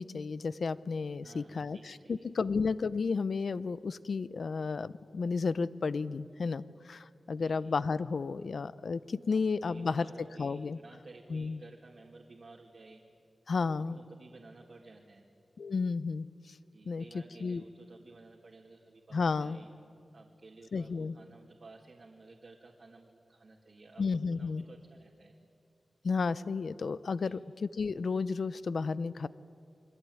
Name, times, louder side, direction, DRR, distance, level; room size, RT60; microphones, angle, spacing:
voice 1, 0.0-10.1 10.4-10.8 11.3-11.6 13.5-14.0 15.6-16.6 16.9-17.6 19.1-19.6 20.7-21.2 24.0-24.6 26.0-29.3, left 4 dB, 60° left, 16 dB, 0.7 m, -32 dB
voice 2, 1.2-2.5 7.4-7.8 9.3-13.0 13.6-15.3 16.7-19.7 20.1-25.3 27.2-27.4, right 3 dB, 50° right, -2 dB, 2.6 m, -54 dB
27.5 x 23.0 x 9.6 m, 2.4 s
wide cardioid pair, 150°, 0 cm